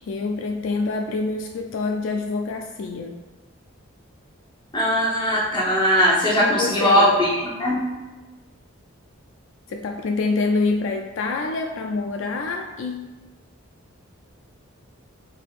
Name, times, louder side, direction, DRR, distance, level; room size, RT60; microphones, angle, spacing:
voice 1, 0.0-3.2 6.4-7.1 9.7-13.1, left 3 dB, 70° left, 3 dB, 0.3 m, -26 dB
voice 2, 4.7-7.3 7.6-7.8, equal, 20° left, -4 dB, 0.8 m, -19 dB
4.8 x 3.6 x 2.4 m, 1.2 s
head